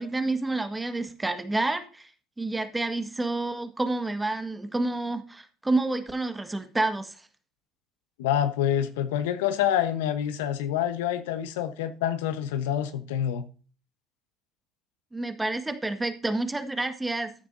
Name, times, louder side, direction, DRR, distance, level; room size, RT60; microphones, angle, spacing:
voice 1, 0.0-2.1 2.4-7.2 15.1-17.3, right 2 dB, 15° right, 1.7 m, -29 dB
voice 2, 8.2-13.5, left 10 dB, 85° left, 1.1 m, -27 dB
14.5 x 9.5 x 2.7 m
supercardioid pair, 85°, 0 cm